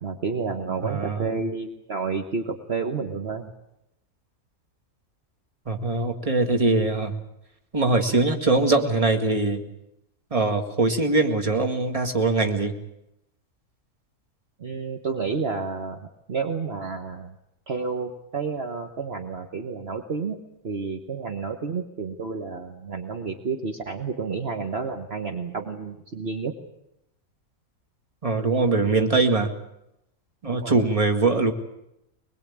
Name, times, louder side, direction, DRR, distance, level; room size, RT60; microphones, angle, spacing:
voice 1, 0.0-3.5 14.6-16.0 16.3-17.3 17.7-26.5 30.4-30.8, right 5 dB, 45° right, 4 dB, 1.5 m, -30 dB
voice 2, 0.7-1.4 5.7-7.1 7.7-9.6 10.3-12.7 28.2-29.5 30.4-31.5, right 3 dB, 25° right, 5 dB, 2.0 m, -22 dB
22.5 x 21.5 x 8.7 m, 0.84 s
omnidirectional pair, 1.6 m